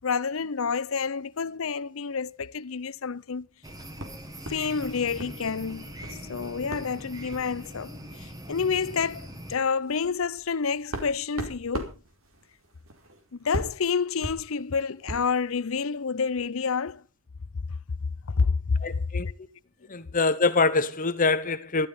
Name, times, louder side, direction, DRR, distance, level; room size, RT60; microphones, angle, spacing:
voice 1, 0.0-3.5 4.5-5.9 6.3-11.9 13.4-17.0 18.3-18.5 18.9-19.3, left 5 dB, 70° left, 0.7 m, -29 dB
sound 1, 3.6-9.6, equal, 20° right, 2.0 m, -42 dB
sound 2, 4.0-5.4 5.7-6.2 6.7-6.9 7.3-7.5 8.4-8.5 8.9-9.0 9.5-15.4, right 1 dB, 80° right, 4.4 m, -39 dB
voice 2, 18.8-19.3 19.9-21.9, left 3 dB, 40° left, 1.1 m, -24 dB
13.5 x 13.5 x 5.6 m
head